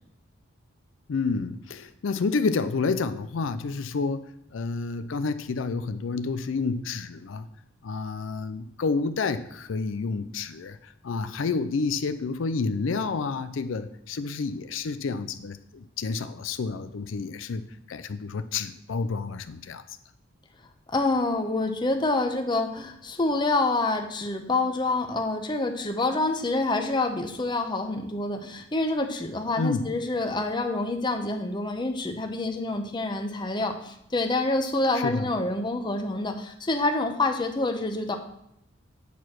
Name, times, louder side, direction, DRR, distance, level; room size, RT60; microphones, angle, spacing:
voice 1, 1.1-7.5 7.8-20.0 29.6-29.9 34.9-35.3, left 4 dB, 80° left, 11 dB, 0.4 m, -29 dB
voice 2, 20.9-38.2, left 2 dB, 25° left, 5 dB, 0.8 m, -27 dB
8.4 x 4.7 x 5.9 m, 0.80 s
head